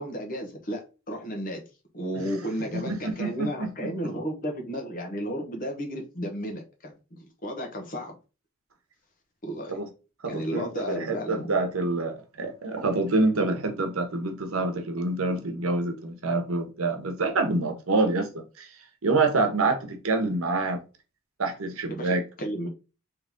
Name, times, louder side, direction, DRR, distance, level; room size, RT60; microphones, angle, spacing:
voice 1, 0.0-1.6 1.9-8.2 9.4-9.8 10.3-11.5 21.9-22.7, equal, 40° left, 1.1 m, -33 dB
voice 2, 2.7-4.1 9.7-9.9 10.2-18.7 19.0-20.8 21.4-22.2, right 3 dB, 90° right, 0.9 m, -27 dB
3.8 x 3.1 x 3.5 m
head